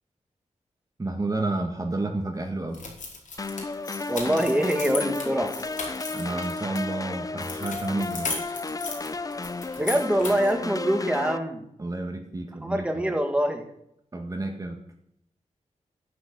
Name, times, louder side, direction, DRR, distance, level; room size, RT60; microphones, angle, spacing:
voice 1, 1.0-2.8 6.1-8.3 11.8-13.1 14.1-14.8, right 2 dB, 25° right, 3 dB, 1.9 m, -30 dB
sound 1, 2.7-6.8 7.4-10.6, left 4 dB, 90° left, 4.8 m, -36 dB
sound 2, 3.4-11.4, left 3 dB, 30° left, 0.7 m, -33 dB
voice 2, 4.1-5.6 9.8-11.7 12.6-13.6, equal, 10° right, 4 dB, 2.3 m, -24 dB
13.0 x 10.5 x 8.7 m, 0.75 s
wide cardioid pair, 120°, 13 cm